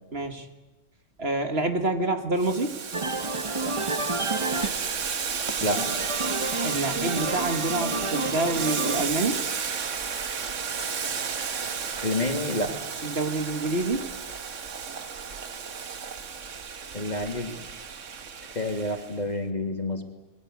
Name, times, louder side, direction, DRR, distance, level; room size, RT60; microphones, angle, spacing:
voice 1, 0.1-0.5 1.2-2.7 6.6-9.4 13.0-14.1, right 2 dB, 50° right, 7 dB, 2.0 m, -27 dB
Boiling, 2.4-19.2, right 6 dB, 70° right, 1.6 m, -33 dB
sound 1, 2.9-12.3, right 2 dB, 25° right, 1.2 m, -32 dB
voice 2, 12.0-12.7 16.9-17.5 18.5-20.0, left 1 dB, 35° left, 4 dB, 2.9 m, -28 dB
29.0 x 22.5 x 8.4 m, 1.1 s
omnidirectional pair, 1.3 m